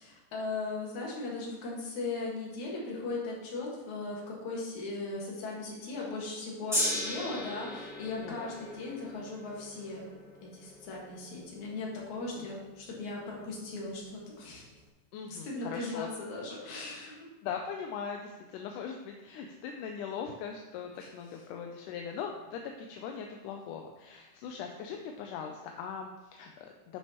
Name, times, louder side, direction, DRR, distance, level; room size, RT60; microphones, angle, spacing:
voice 1, 0.0-10.0 10.4-14.6 15.3-17.3, left 3 dB, 65° left, -3 dB, 3.0 m, -38 dB
Gong, 6.7-13.1 13.8-13.9, equal, ahead, 1.3 m, -37 dB
voice 2, 8.2-8.5 12.4-12.5 15.1-16.1 16.7-16.9 17.4-27.0, left 7 dB, 80° left, 3 dB, 2.1 m, -40 dB
10.5 x 6.1 x 3.0 m, 1.2 s
omnidirectional pair, 3.8 m